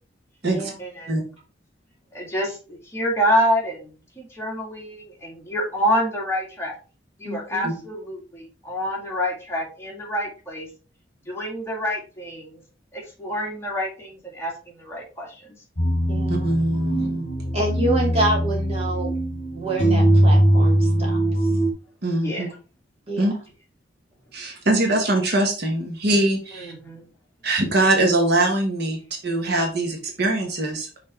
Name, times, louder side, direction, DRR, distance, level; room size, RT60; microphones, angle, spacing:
voice 1, 0.8-1.1 2.1-6.8 7.2-10.7 11.3-12.6 12.9-15.6 22.2-22.4 26.5-27.1, equal, 15° left, -3 dB, 2.3 m, -27 dB
voice 2, 7.2-7.7 16.1-16.5 17.5-19.2 19.5-21.2 23.1-23.3, right 1 dB, 35° right, -2 dB, 2.5 m, -27 dB
sound 1, 15.8-21.7, right 1 dB, 45° left, 1.8 m, -21 dB
voice 3, 16.3-17.3 22.0-22.5 23.2-23.3 24.3-26.7 27.4-30.9, right 1 dB, 60° right, 3 dB, 1.4 m, -22 dB
5.9 x 4.2 x 4.3 m, 0.35 s
head